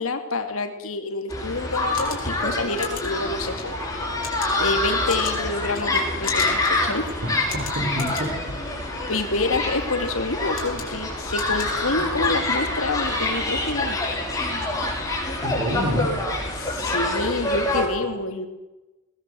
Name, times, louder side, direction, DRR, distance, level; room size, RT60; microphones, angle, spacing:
voice 1, 0.0-3.7 4.6-7.0 9.1-14.0 16.6-18.5, left 3 dB, 75° left, 7 dB, 2.7 m, -27 dB
sound 1, 1.3-17.9, left 2 dB, 15° left, 7.9 m, -26 dB
sound 2, 1.7-12.4, left 7 dB, 45° left, 6.2 m, -39 dB
voice 2, 7.2-8.6 15.4-16.1, equal, 55° right, 1 dB, 4.7 m, -28 dB
22.0 x 19.5 x 7.9 m, 1.1 s
head